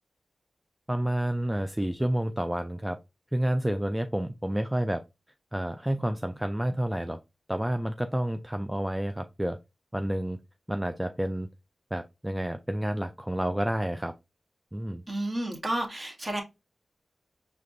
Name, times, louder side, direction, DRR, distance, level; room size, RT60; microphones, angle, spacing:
voice 1, 0.9-3.0 3.3-5.0 5.5-7.2 7.5-9.6 9.9-10.4 10.7-11.5 11.9-14.1 14.7-15.0, right 1 dB, 10° right, 0.4 m, -29 dB
voice 2, 15.1-16.4, right 1 dB, 35° right, 1.8 m, -31 dB
4.9 x 3.3 x 2.6 m
cardioid pair, 40°, 0 cm